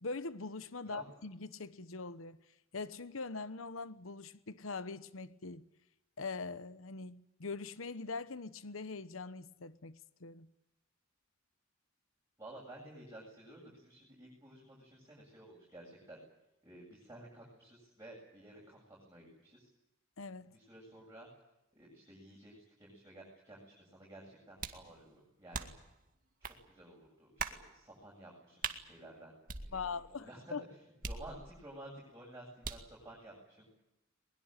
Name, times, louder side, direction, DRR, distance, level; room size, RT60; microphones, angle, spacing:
voice 1, 0.0-2.4 2.7-5.6 6.2-10.5 20.2-20.5 29.7-30.3 30.5-30.6, left 4 dB, 80° left, 1.1 m, -42 dB
voice 2, 12.4-16.2 16.6-19.7 20.5-21.3 21.7-25.7 26.7-29.4 29.6-33.8, right 1 dB, 15° right, 7.9 m, -53 dB
sound 1, 24.6-24.9 25.5-25.9 26.4-26.6 27.4-27.7 28.6-28.8 29.5-30.1 31.0-31.7 32.6-33.0, right 5 dB, 45° right, 2.1 m, -41 dB
22.0 x 21.5 x 9.0 m
head